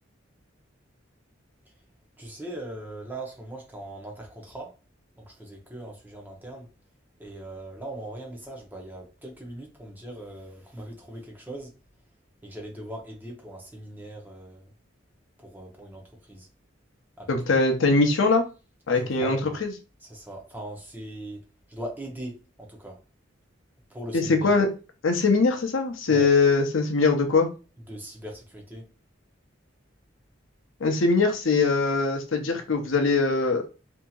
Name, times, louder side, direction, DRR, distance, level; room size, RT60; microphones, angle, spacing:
voice 1, 2.2-4.8 5.2-6.7 7.2-11.7 12.4-14.7 15.4-16.5 17.2-17.3 18.9-19.6 20.0-23.0 23.9-24.5 26.1-26.3 27.9-28.9, right 1 dB, 10° right, 0.7 m, -40 dB
voice 2, 17.3-18.4 18.9-19.7 24.1-24.7 25.0-27.5 30.8-33.6, left 3 dB, 90° left, 0.6 m, -22 dB
2.8 x 2.7 x 2.3 m
head